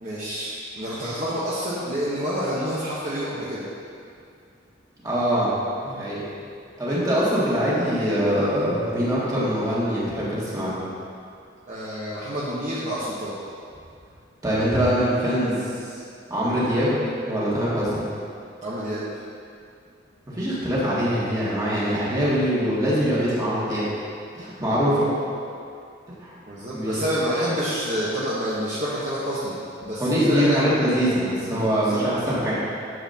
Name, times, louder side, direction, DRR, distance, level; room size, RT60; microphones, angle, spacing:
voice 1, 0.0-3.6 11.7-13.4 18.6-19.0 26.5-29.6 29.8-30.7 31.8-32.0, equal, 40° right, -8 dB, 1.1 m, -28 dB
voice 2, 5.0-5.5 5.8-6.2 6.8-10.7 14.4-15.7 16.3-16.9 17.2-18.1 20.3-23.8 24.3-25.1 26.2-26.3 26.7-27.0 30.0-32.6, equal, 20° right, -9 dB, 2.1 m, -23 dB
11.0 x 7.4 x 2.8 m, 2.4 s
head